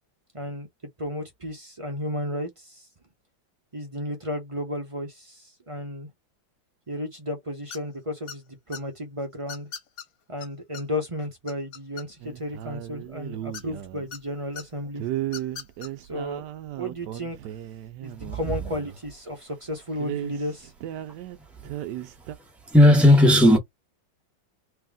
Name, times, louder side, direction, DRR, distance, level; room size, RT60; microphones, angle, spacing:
voice 1, 0.3-0.7 1.0-2.9 3.7-6.1 6.9-9.7 10.3-15.0 16.0-16.4 16.8-17.4 18.0-20.7, left 1 dB, 35° right, 0.5 m, -33 dB
sound 1, 7.7-8.0 8.3-8.8 9.5-10.1 10.4-10.5 10.7-10.8 11.2-12.4 13.5-14.2 14.6-14.7 15.2-15.9, left 7 dB, 55° left, 1.2 m, -39 dB
sound 2, 12.2-14.1 15.0-19.0 19.3-19.4 19.7-21.4 21.6-22.4, right 13 dB, 75° right, 1.1 m, -35 dB
voice 2, 22.7-23.6, left 1 dB, ahead, 0.9 m, -14 dB
3.3 x 2.8 x 3.6 m
omnidirectional pair, 2.1 m